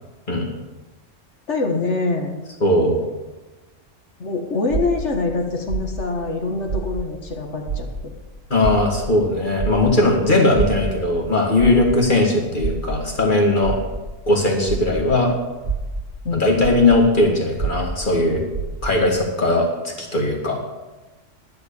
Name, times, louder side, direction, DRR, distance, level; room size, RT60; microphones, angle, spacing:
voice 1, 1.5-2.4 4.2-7.9 16.3-16.5, left 3 dB, 65° left, 3 dB, 1.8 m, -24 dB
voice 2, 2.6-3.0 8.5-13.8 14.3-15.3 16.3-18.4 18.8-20.6, left 2 dB, 40° left, 1 dB, 2.4 m, -18 dB
sound 1, 4.7-7.3 7.6-15.2 15.6-19.1, right 4 dB, 85° right, 2.7 m, -28 dB
11.5 x 9.2 x 7.0 m, 1.1 s
omnidirectional pair, 1.3 m